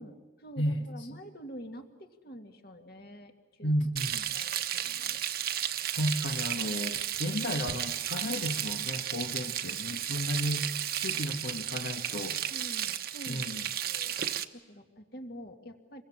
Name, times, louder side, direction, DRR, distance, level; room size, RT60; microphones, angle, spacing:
voice 1, 0.0-3.3 3.6-3.7 4.3-5.2 9.6-9.9 11.1-11.2 12.5-13.5 13.8-14.2 14.5-16.0, equal, 50° left, 4 dB, 2.4 m, -47 dB
voice 2, 3.6-4.3 5.9-10.7 11.0-12.4 13.3-13.6, equal, 75° left, 3 dB, 1.7 m, -33 dB
Frying (food), 4.0-14.4, right 10 dB, 50° right, 1.0 m, -33 dB
27.5 x 23.0 x 7.5 m, 1.2 s
head